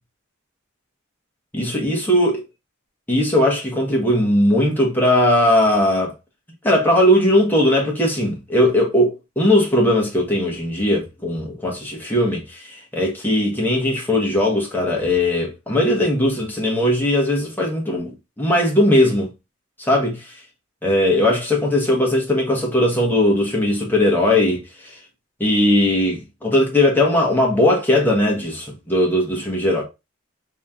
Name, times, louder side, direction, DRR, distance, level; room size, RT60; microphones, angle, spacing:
voice 1, 1.5-2.3 3.1-6.1 6.6-18.1 18.4-19.3 19.8-20.3 20.8-24.9 25.4-29.8, left 1 dB, 10° left, 1.0 m, -18 dB
3.1 x 2.9 x 3.5 m
head